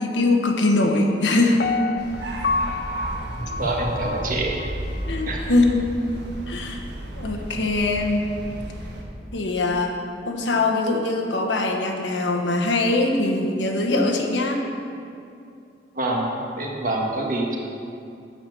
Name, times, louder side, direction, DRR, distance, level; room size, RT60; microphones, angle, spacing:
voice 1, 0.0-1.6 5.1-6.1 6.5-6.8 7.2-8.3 9.3-14.6, left 2 dB, 85° left, 2 dB, 1.2 m, -22 dB
Piano, 1.6-4.7 5.1-5.2, left 4 dB, 60° left, 0.4 m, -28 dB
sound 1, 2.0-9.0, right 1 dB, 70° right, 1.3 m, -33 dB
voice 2, 3.1-4.6 5.3-5.5 15.9-17.6, right 2 dB, 50° right, -1 dB, 1.4 m, -26 dB
8.8 x 6.7 x 6.8 m, 2.5 s
head